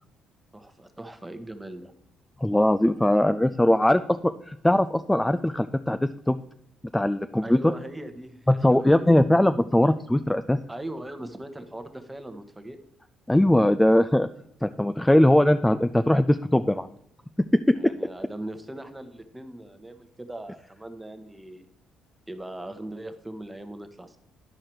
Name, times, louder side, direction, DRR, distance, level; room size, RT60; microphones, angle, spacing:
voice 1, 0.5-1.9 7.4-9.2 10.7-12.8 17.7-21.7 22.3-24.2, right 1 dB, 10° right, 8 dB, 1.0 m, -39 dB
voice 2, 2.4-6.4 6.9-7.6 8.5-10.6 13.3-14.3 14.6-16.9 17.7-17.9, left 1 dB, 10° left, 10 dB, 0.3 m, -21 dB
11.0 x 4.9 x 4.5 m, 0.72 s
cardioid pair, 85°, 0 cm